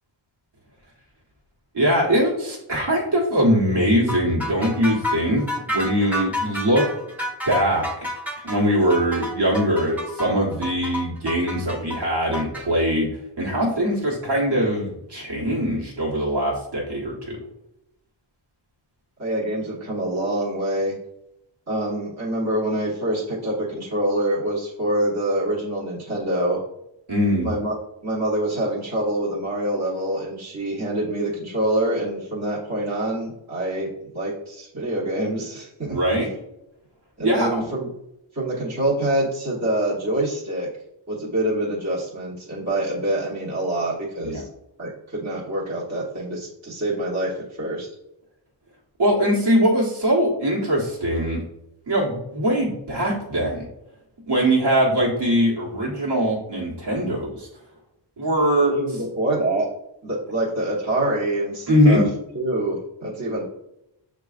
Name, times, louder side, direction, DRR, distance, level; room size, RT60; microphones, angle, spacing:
voice 1, 1.7-6.8 7.5-8.1 8.4-13.1 13.4-17.4 27.1-27.5 35.8-36.3 37.2-37.6 44.2-44.4 49.0-51.4 51.9-53.7 54.3-57.5 58.2-59.0 61.7-62.0, equal, 55° right, -4 dB, 1.3 m, -21 dB
sound 1, 4.1-12.6, left 1 dB, 5° right, 0.8 m, -29 dB
voice 2, 19.2-21.0 21.7-26.6 27.4-27.7 28.0-33.9 34.1-36.0 37.2-37.9 38.3-40.7 41.1-44.5 44.8-47.3 47.6-47.9 58.6-59.6 60.0-62.0 62.3-63.4, right 1 dB, 35° right, -6 dB, 1.1 m, -25 dB
6.6 x 2.4 x 2.4 m, 0.85 s
wide cardioid pair, 100°, 48 cm